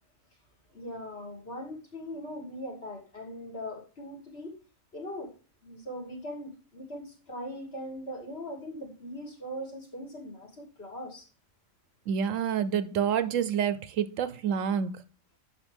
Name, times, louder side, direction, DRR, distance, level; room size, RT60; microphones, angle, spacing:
voice 1, 0.7-4.6 4.9-5.3 5.6-11.3, equal, 45° left, 2.6 m, -40 dB
voice 2, 12.1-15.0, right 8 dB, 70° right, 1.0 m, -28 dB
11.0 x 6.0 x 3.5 m
omnidirectional pair, 1.4 m